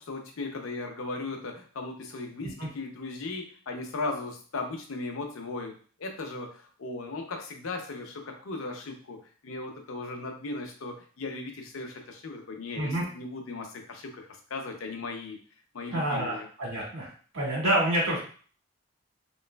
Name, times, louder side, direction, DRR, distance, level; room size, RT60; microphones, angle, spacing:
voice 1, 0.0-5.7 6.0-9.2 9.4-15.4 15.7-16.5, left 3 dB, 80° left, 3 dB, 0.6 m, -37 dB
voice 2, 12.7-13.0 15.9-17.1 17.3-18.2, right 1 dB, 75° right, -4 dB, 1.5 m, -28 dB
3.1 x 3.0 x 2.2 m, 0.43 s
head